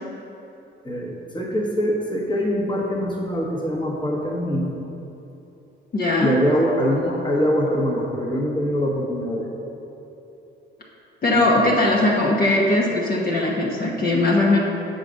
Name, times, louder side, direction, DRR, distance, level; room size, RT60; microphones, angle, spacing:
voice 1, 0.8-4.7 6.2-9.5 11.3-11.7, equal, 25° left, -2 dB, 1.3 m, -23 dB
voice 2, 5.9-6.7 7.1-7.2 11.2-14.6, left 2 dB, 50° left, -3 dB, 1.1 m, -20 dB
7.4 x 4.0 x 6.3 m, 3.0 s
cardioid pair, 90°, 20 cm